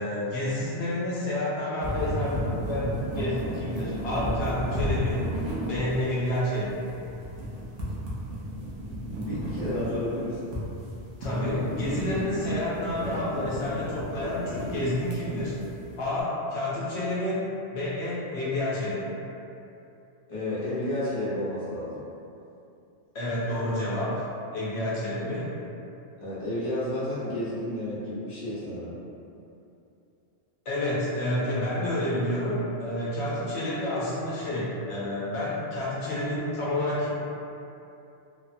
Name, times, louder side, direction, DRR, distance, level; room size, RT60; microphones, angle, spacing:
voice 1, 0.0-5.2 5.7-6.8 11.2-15.5 16.0-17.5 17.7-19.1 23.1-24.3 24.5-25.5 30.7-37.1, left 1 dB, 75° left, -7 dB, 0.9 m, -29 dB
sound 1, 1.8-16.1, equal, 90° right, 1.0 m, -33 dB
voice 2, 9.2-10.5 20.3-22.0 26.2-29.0, left 1 dB, 30° left, -11 dB, 0.8 m, -31 dB
3.1 x 2.1 x 2.5 m, 2.7 s
omnidirectional pair, 1.2 m